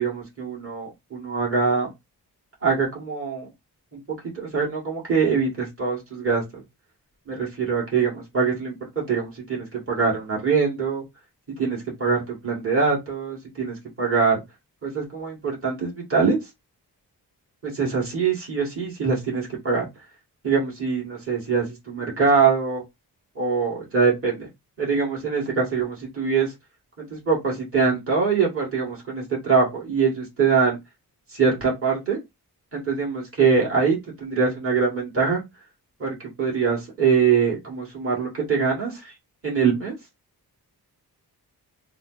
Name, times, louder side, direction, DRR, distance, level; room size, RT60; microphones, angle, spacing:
voice 1, 0.0-1.9 2.6-3.5 3.9-4.0 4.3-6.6 7.3-11.0 11.6-14.4 14.8-16.4 17.6-19.9 20.4-22.8 23.4-24.5 24.8-26.5 27.0-30.8 31.3-32.2 32.7-35.4 36.0-39.1 39.4-40.0, right 5 dB, 35° right, -4 dB, 1.8 m, -23 dB
3.8 x 2.0 x 3.9 m, 0.20 s
wide cardioid pair, 90°, 40 cm